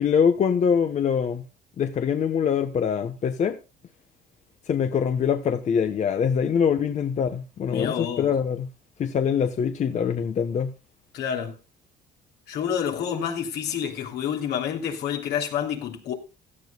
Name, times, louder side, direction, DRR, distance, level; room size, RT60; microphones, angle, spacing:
voice 1, 0.0-1.4 1.8-3.6 4.7-8.7 9.0-10.7, left 7 dB, 45° left, 1.2 m, -24 dB
voice 2, 7.7-8.3 11.1-11.6 12.5-16.1, left 8 dB, 75° left, 3.2 m, -28 dB
16.5 x 13.0 x 2.4 m
cardioid pair, 110°, 17 cm